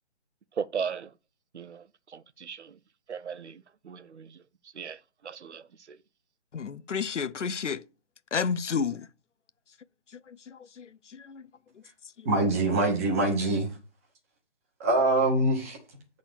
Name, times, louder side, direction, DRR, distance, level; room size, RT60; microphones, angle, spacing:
voice 1, 0.6-1.1 1.5-2.8 3.1-4.4 4.7-6.0, right 6 dB, 70° right, 0.7 m, -37 dB
voice 2, 6.5-7.8 8.3-9.1 10.3-11.4 12.2-12.3, left 6 dB, 85° left, 0.8 m, -31 dB
voice 3, 12.2-13.7 14.8-15.8, right 2 dB, 15° right, 1.2 m, -24 dB
8.3 x 4.0 x 6.6 m
hypercardioid pair, 165°, 35 cm